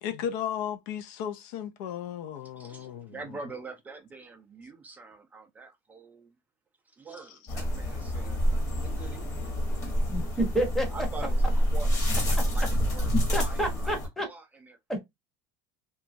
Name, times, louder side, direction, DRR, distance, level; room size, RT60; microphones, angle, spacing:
voice 1, 0.0-3.2, left 9 dB, 65° left, 0.4 m, -35 dB
voice 2, 2.6-6.4 6.9-9.3 9.8-10.3 10.9-13.9 14.2-14.8, right 4 dB, 15° right, 0.3 m, -45 dB
sound 1, 7.5-14.1, equal, 25° left, 1.0 m, -27 dB
voice 3, 10.1-10.9 13.3-14.3 14.9-15.0, right 1 dB, 5° left, 0.7 m, -29 dB
2.8 x 2.3 x 2.5 m
cardioid pair, 160°, 11 cm